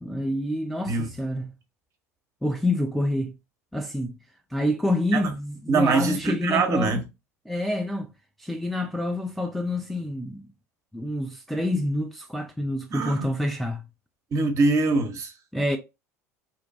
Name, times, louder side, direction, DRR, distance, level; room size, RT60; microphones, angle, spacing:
voice 1, 0.0-1.5 2.4-3.3 3.7-4.1 4.5-7.0 7.5-8.1 8.4-10.5 10.9-13.8 15.5-15.8, left 1 dB, ahead, 0.3 m, -27 dB
voice 2, 5.7-7.0 12.9-13.3 14.3-15.4, right 3 dB, 40° right, 0.7 m, -23 dB
2.6 x 2.1 x 2.7 m
figure-of-eight pair, 70°, 9 cm